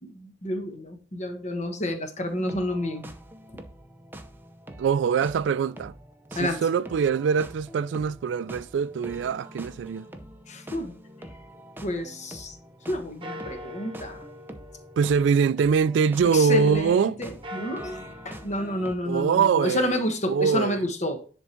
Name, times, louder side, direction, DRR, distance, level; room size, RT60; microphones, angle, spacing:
voice 1, 0.0-3.1 6.3-6.6 10.5-11.0 11.8-12.6 12.9-14.2 16.3-21.2, left 1 dB, 40° left, 1.3 m, -29 dB
sound 1, 2.2-19.0, right 1 dB, 10° right, 0.7 m, -45 dB
voice 2, 4.8-5.9 6.4-10.1 15.0-17.2 19.0-20.0 20.3-20.9, right 6 dB, 75° right, 0.3 m, -23 dB
sound 2, 11.1-12.8 13.2-16.7 17.2-18.5, left 1 dB, 30° right, 1.1 m, -44 dB
10.5 x 3.6 x 4.4 m
head